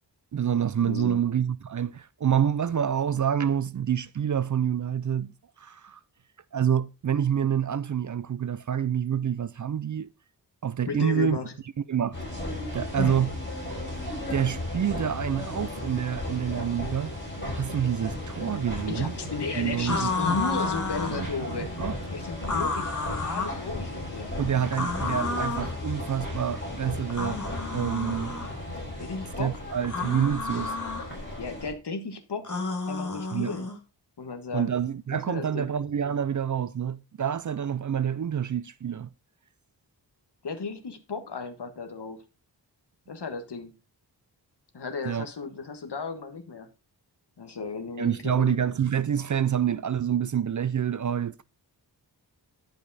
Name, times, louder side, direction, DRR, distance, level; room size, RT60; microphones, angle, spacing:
voice 1, 0.3-5.3 5.6-6.0 6.5-10.1 10.6-11.4 11.9-12.2 12.7-13.3 13.9-14.0 14.3-17.1 17.5-19.2 19.5-20.4 21.1-21.3 21.6-22.0 24.4-27.4 27.7-28.4 29.4-30.8 33.3-33.5 34.5-39.1 45.0-45.3 48.0-51.4, right 8 dB, 45° right, 0.4 m, -27 dB
voice 2, 0.8-1.2 10.9-11.5 13.0-13.2 18.9-21.7 22.1-24.3 29.0-29.6 31.4-32.5 32.9-33.7 34.2-34.7 35.1-35.7 40.4-42.2 43.1-43.7 44.7-46.7 47.4-48.6, left 4 dB, 65° left, 1.6 m, -34 dB
sound 1, 12.1-31.7, left 1 dB, 25° left, 5.3 m, -35 dB
sound 2, 19.9-21.3 22.4-23.6 24.7-25.7 27.1-28.5 29.8-31.1 32.4-33.8, left 3 dB, 45° left, 1.9 m, -31 dB
11.0 x 5.2 x 4.1 m
wide cardioid pair, 120°, 43 cm